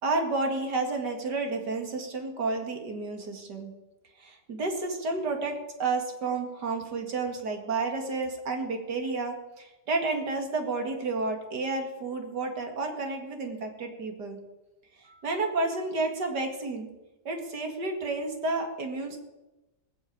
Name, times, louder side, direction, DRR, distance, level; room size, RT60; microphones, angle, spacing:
voice 1, 0.0-3.7 4.2-14.4 15.0-16.9 17.2-19.2, right 3 dB, 70° right, 4 dB, 2.7 m, -31 dB
20.0 x 7.1 x 8.6 m, 1.0 s
omnidirectional pair, 1.8 m